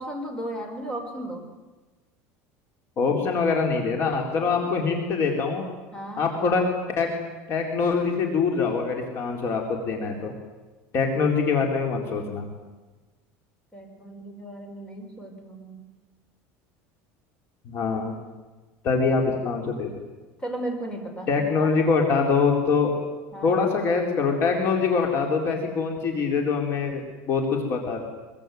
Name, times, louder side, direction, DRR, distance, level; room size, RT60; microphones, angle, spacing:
voice 1, 0.0-1.4 4.4-4.5 5.9-6.2 13.7-15.9 20.4-21.8 23.3-23.6, right 1 dB, 15° left, 4 dB, 5.0 m, -35 dB
voice 2, 3.0-5.7 6.2-6.7 7.0-7.1 7.5-10.3 10.9-12.4 17.7-18.1 18.8-19.9 21.3-22.9 23.4-28.1, left 5 dB, 40° left, 2 dB, 4.2 m, -24 dB
25.0 x 23.0 x 9.4 m, 1.2 s
cardioid pair, 155°, 6 cm